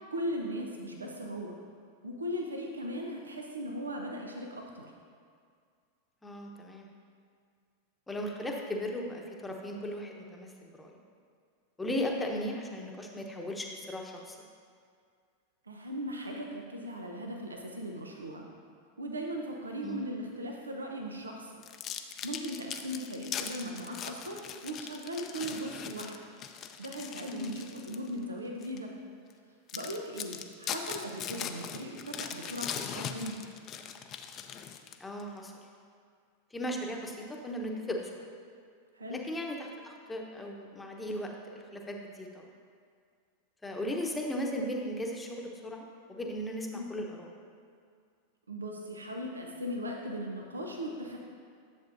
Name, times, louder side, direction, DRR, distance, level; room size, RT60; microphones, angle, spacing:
voice 1, 0.1-1.6 2.0-4.9 15.7-18.5 19.0-21.5 22.2-24.4 24.6-26.2 26.8-28.9 29.7-33.3 38.9-39.2 46.7-46.8 48.5-51.2, equal, 90° right, 1 dB, 0.7 m, -38 dB
voice 2, 6.2-6.9 8.1-10.9 11.8-14.4 19.8-20.1 27.3-27.6 35.0-35.5 36.5-38.1 39.1-42.5 43.6-47.3, equal, 10° left, 1 dB, 0.9 m, -37 dB
sound 1, 21.6-28.1 28.6-28.8 29.3-29.4 29.7-35.2, left 8 dB, 40° left, 0.5 m, -40 dB
10.5 x 7.1 x 2.6 m, 2.2 s
hypercardioid pair, 95°, 0 cm